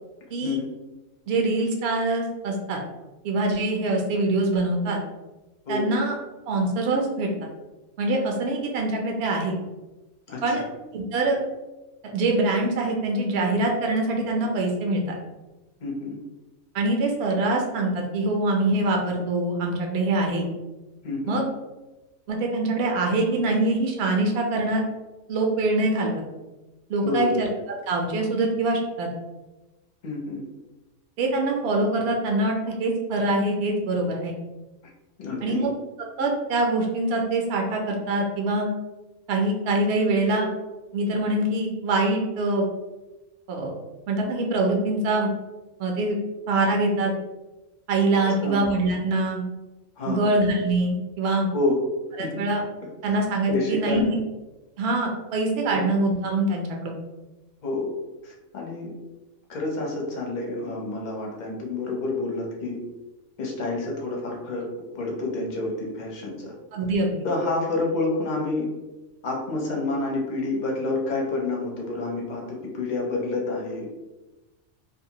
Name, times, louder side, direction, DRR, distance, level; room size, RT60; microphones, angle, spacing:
voice 1, 1.3-2.8 3.2-5.0 5.7-6.1 6.5-7.3 8.0-9.5 10.4-10.6 10.9-11.4 12.0-15.2 16.7-20.5 21.3-21.4 22.3-24.8 25.3-26.2 26.9-27.5 27.9-29.1 31.2-34.3 35.4-35.7 36.2-38.7 39.3-40.5 40.9-42.7 43.5-43.7 44.1-45.3 45.8-46.2 46.5-47.1 47.9-49.4 50.1-51.5 52.2-52.6 53.0-54.2 54.8-56.9 66.7-67.1, right 2 dB, 65° right, 1 dB, 0.7 m, -24 dB
voice 2, 10.3-10.6 15.8-16.2 21.0-21.4 27.0-27.4 30.0-30.4 35.2-35.6 48.2-48.6 50.0-50.3 51.5-51.8 52.2-52.5 53.5-54.1 55.7-55.8 57.6-57.9 58.2-58.9 59.5-62.8 63.4-64.6 64.9-66.5 67.2-68.7 69.2-73.9, left 2 dB, 50° left, -1 dB, 0.5 m, -28 dB
2.6 x 2.4 x 2.8 m, 1.1 s
omnidirectional pair, 1.4 m